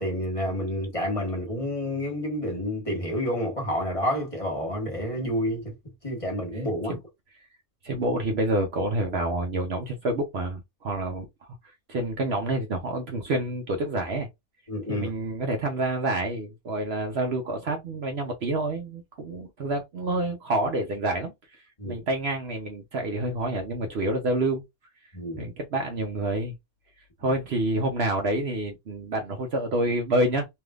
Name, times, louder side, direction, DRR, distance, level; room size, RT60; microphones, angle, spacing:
voice 1, 0.0-5.7 6.0-6.9 14.7-15.1 21.8-22.0 25.1-25.5, equal, 25° left, 1.4 m, -29 dB
voice 2, 7.8-11.3 11.9-14.3 14.9-24.6 25.4-26.5 27.2-30.5, right 2 dB, 55° right, 0.9 m, -28 dB
3.4 x 2.7 x 2.3 m
omnidirectional pair, 1.4 m